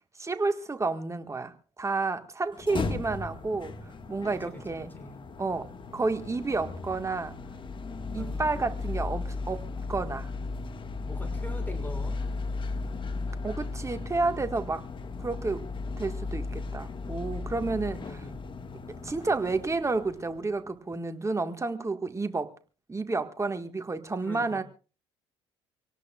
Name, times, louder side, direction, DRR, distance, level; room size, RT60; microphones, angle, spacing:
voice 1, 0.2-3.8 4.1-4.9 5.4-5.7 5.9-7.4 8.1-10.3 13.4-14.8 15.2-15.7 16.0-18.3 19.0-22.5 22.9-24.6, right 3 dB, 20° right, 8 dB, 1.8 m, -30 dB
sound 1, 2.5-20.6, left 3 dB, 35° left, 1.7 m, -36 dB
voice 2, 4.3-5.2 8.1-8.8 11.0-12.2 18.0-18.5 24.2-24.6, left 1 dB, 15° left, 8 dB, 6.0 m, -44 dB
25.5 x 18.0 x 2.4 m, 0.36 s
hypercardioid pair, 60°, 14 cm